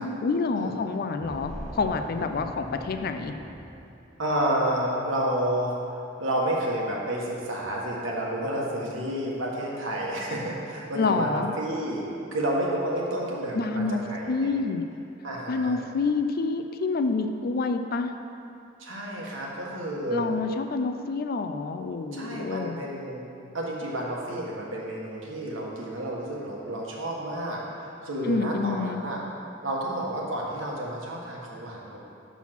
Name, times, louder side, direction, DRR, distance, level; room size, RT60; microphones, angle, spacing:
voice 1, 0.0-3.4 11.0-11.5 13.5-14.0 14.3-14.8 15.5-18.1 20.1-22.8 28.3-29.0, left 4 dB, 50° left, 7 dB, 0.4 m, -28 dB
sound 1, 1.2-4.7, equal, 5° left, 0.6 m, -41 dB
voice 2, 4.2-5.7 6.2-12.0 12.3-14.5 15.2-15.8 18.8-20.3 22.1-23.2 23.5-29.2 29.6-32.1, right 1 dB, 85° right, -3 dB, 1.4 m, -30 dB
6.2 x 5.8 x 6.0 m, 2.6 s
head